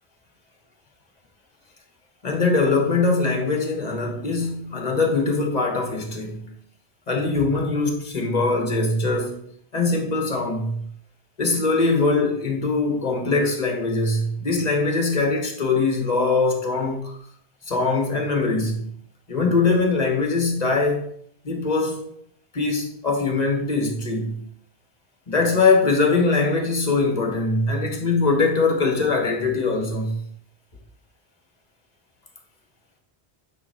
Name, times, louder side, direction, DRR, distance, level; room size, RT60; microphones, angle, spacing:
voice 1, 2.2-6.5 7.1-9.4 9.7-10.8 11.4-17.2 17.7-18.9 19.3-21.0 21.4-22.1 22.5-24.4 25.3-30.2, left 3 dB, 40° left, 1.5 m, -22 dB
9.6 x 3.9 x 4.2 m
omnidirectional pair, 1.1 m